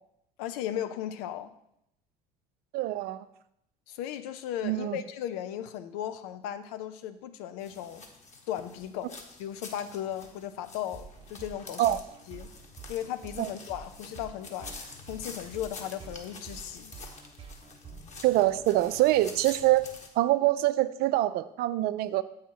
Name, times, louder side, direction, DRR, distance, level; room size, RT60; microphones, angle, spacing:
voice 1, 0.4-1.5 3.9-8.1 8.5-12.0 12.3-12.5 12.9-14.8 15.1-16.9, left 11 dB, 70° left, 11 dB, 0.6 m, -36 dB
voice 2, 2.7-3.3 4.6-5.0 11.8-12.0 13.4-13.5 18.2-19.8 20.1-22.2, right 15 dB, 55° right, 14 dB, 0.4 m, -25 dB
sound 1, 7.6-20.1, left 3 dB, 35° left, 1.4 m, -47 dB
sound 2, 10.9-19.3, right 5 dB, 30° right, 0.9 m, -48 dB
8.1 x 5.0 x 4.5 m, 0.79 s
hypercardioid pair, 60°, 20 cm